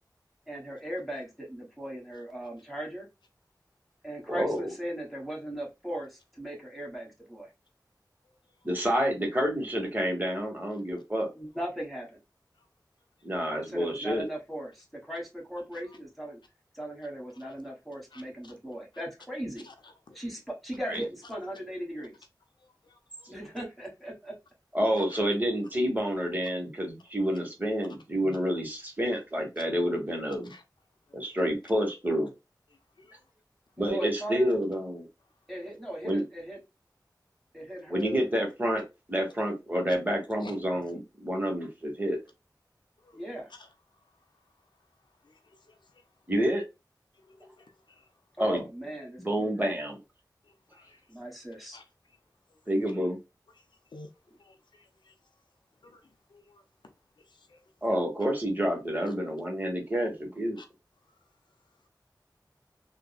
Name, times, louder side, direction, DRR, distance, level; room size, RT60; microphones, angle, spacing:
voice 1, 0.5-3.0 4.0-6.1 6.4-7.5 11.4-12.1 13.7-16.4 16.8-19.7 20.1-22.1 23.3-24.3 33.9-34.5 35.5-36.6 37.5-38.3 43.1-43.5 48.4-49.7 51.1-51.8, equal, ahead, 1.4 m, -38 dB
voice 2, 4.3-4.7 8.6-11.3 13.2-14.3 20.9-21.0 24.7-30.5 31.1-32.3 33.8-35.1 36.0-36.2 37.9-38.8 39.1-42.2 46.3-46.6 48.4-48.7 49.2-50.0 52.7-53.2 57.8-60.6, equal, 25° right, 1.1 m, -28 dB
voice 3, 18.1-18.5 19.6-20.2 22.8-23.3 25.0-25.2 28.2-28.4 30.5-30.6 31.1-31.3 33.0-33.1 40.4-40.5 43.0-43.7 45.2-45.8 47.3-48.1 50.4-51.0 51.7-51.8 53.9-54.1 54.4-55.1 55.8-56.0 56.3-56.6 57.3-57.6 60.6-60.7, left 2 dB, 85° left, 0.5 m, -53 dB
3.4 x 2.1 x 2.2 m
wide cardioid pair, 50°, 8 cm